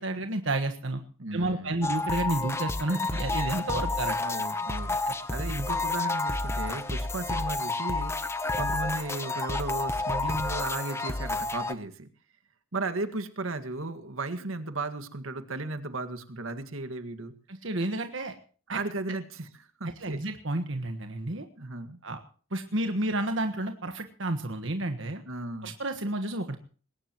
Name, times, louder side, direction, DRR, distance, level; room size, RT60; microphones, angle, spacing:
voice 1, 0.0-1.0 1.3-4.2 5.1-5.2 17.5-18.3 18.7-18.8 20.0-21.4 22.0-22.2 22.5-25.2 25.6-26.6, right 2 dB, 70° right, 6 dB, 1.4 m, -31 dB
voice 2, 1.2-1.8 4.2-12.1 12.7-17.3 18.7-20.2 21.6-22.0 25.3-25.7, right 2 dB, 85° right, 9 dB, 1.9 m, -35 dB
sound 1, 1.8-11.7, left 3 dB, 15° left, 0.9 m, -30 dB
21.0 x 18.0 x 3.1 m, 0.41 s
head